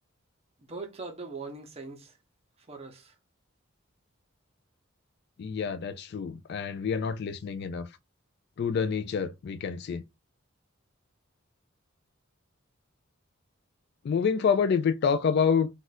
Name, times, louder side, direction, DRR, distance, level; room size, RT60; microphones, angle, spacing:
voice 1, 0.6-2.2 2.7-3.1, right 3 dB, 30° right, 0.7 m, -41 dB
voice 2, 5.4-7.9 8.6-10.0 14.0-15.7, left 6 dB, 55° left, 0.3 m, -27 dB
2.4 x 2.3 x 4.1 m
head